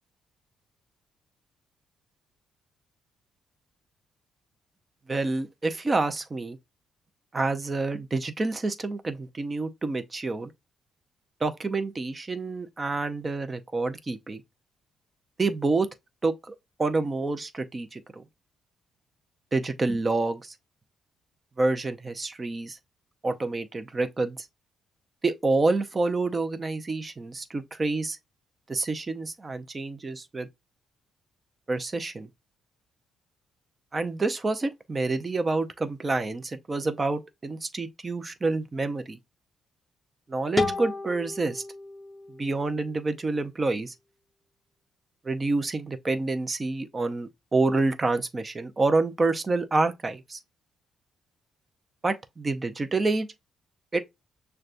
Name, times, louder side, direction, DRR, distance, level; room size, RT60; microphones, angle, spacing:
voice 1, 5.1-6.6 7.3-10.5 11.4-14.4 15.4-15.9 16.2-18.2 19.5-20.5 21.6-22.8 23.2-24.5 25.2-28.2 28.7-30.5 31.7-32.3 33.9-39.2 40.3-41.6 42.3-43.9 45.2-50.4 52.0-53.3 53.9-54.0, right 3 dB, 30° right, 0.6 m, -28 dB
sound 1, 40.6-43.4, left 2 dB, 10° left, 0.7 m, -33 dB
6.3 x 2.3 x 2.5 m
cardioid pair, 90°, 0 cm